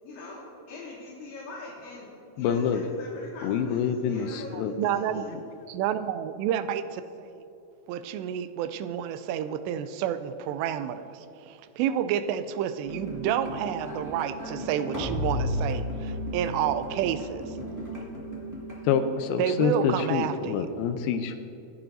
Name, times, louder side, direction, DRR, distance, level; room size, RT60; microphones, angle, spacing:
voice 1, 0.0-2.1 2.4-5.3, left 3 dB, 60° left, -6 dB, 3.3 m, -42 dB
voice 2, 2.4-2.8 3.4-4.7 18.8-21.4, left 7 dB, 85° left, 7 dB, 2.2 m, -26 dB
voice 3, 4.5-5.2 5.7-7.4 7.9-11.1 11.5-17.4 19.4-20.7, right 9 dB, 85° right, 11 dB, 2.8 m, -29 dB
sound 1, 12.9-19.1, equal, 20° right, 0.4 m, -34 dB
24.5 x 10.5 x 2.7 m, 2.7 s
omnidirectional pair, 4.9 m